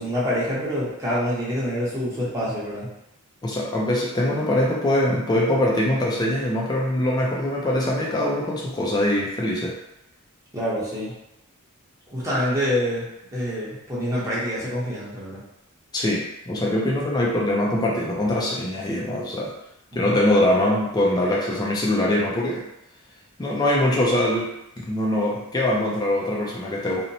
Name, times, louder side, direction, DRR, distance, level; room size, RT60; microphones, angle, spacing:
voice 1, 0.0-2.9 10.5-11.1 12.1-15.4 19.9-20.2, equal, 15° right, -8 dB, 0.8 m, -26 dB
voice 2, 3.4-9.8 15.9-19.5 19.9-22.6 23.4-27.0, left 1 dB, 20° left, -3 dB, 0.3 m, -23 dB
2.8 x 2.0 x 2.6 m, 0.84 s
head